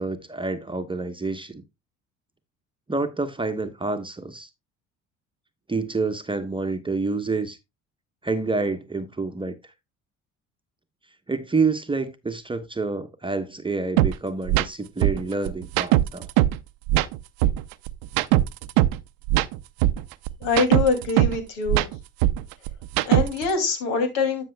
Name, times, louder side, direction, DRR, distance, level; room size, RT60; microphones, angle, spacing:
voice 1, 0.0-1.6 2.9-4.5 5.7-7.6 8.2-9.5 11.3-16.3, right 3 dB, 15° right, 0.9 m, -28 dB
sound 1, 14.0-14.1 14.5-14.7 15.0-16.6 16.9-19.0 19.3-21.4 21.7-23.5, right 15 dB, 80° right, 0.6 m, -20 dB
voice 2, 20.4-21.9 23.1-24.4, left 4 dB, 90° left, 2.6 m, -24 dB
12.5 x 6.2 x 2.2 m
supercardioid pair, 70°, 34 cm